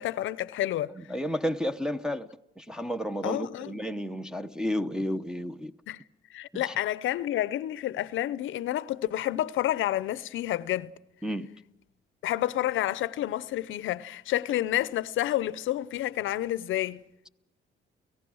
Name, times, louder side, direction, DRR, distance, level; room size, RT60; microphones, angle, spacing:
voice 1, 0.0-0.9 3.2-3.7 5.9-6.0 6.3-10.9 12.2-17.0, left 13 dB, 80° left, 0.7 m, -29 dB
voice 2, 0.9-2.3 2.6-5.7 6.5-6.8 11.2-11.5, equal, 5° right, 0.8 m, -32 dB
30.0 x 15.5 x 6.3 m
cardioid pair, 90°, 20 cm